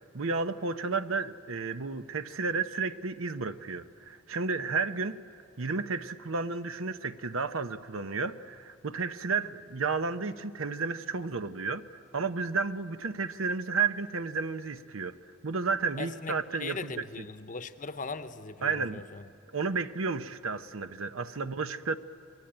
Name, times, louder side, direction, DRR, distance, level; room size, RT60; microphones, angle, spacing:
voice 1, 0.1-5.2 5.6-11.8 12.1-15.1 15.4-17.0 18.6-19.0 19.5-22.0, right 4 dB, 80° right, 0.9 m, -32 dB
voice 2, 16.0-19.3, left 4 dB, 40° left, 0.9 m, -39 dB
29.0 x 22.0 x 8.9 m
head